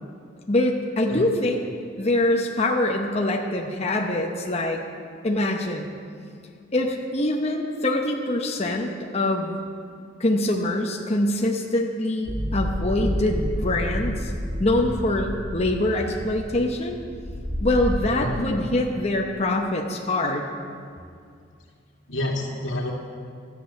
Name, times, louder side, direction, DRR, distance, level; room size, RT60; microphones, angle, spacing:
voice 1, 0.5-1.6 2.0-4.8 5.2-5.9 6.7-9.6 10.2-14.3 14.6-17.0 17.6-20.5, left 1 dB, 35° left, 1 dB, 0.9 m, -24 dB
voice 2, 1.1-1.4 18.2-18.6 22.1-22.9, left 1 dB, 90° left, -1 dB, 2.1 m, -29 dB
sound 1, 12.3-18.0, equal, 15° right, 1.2 m, -30 dB
13.0 x 8.5 x 6.8 m, 2.3 s
head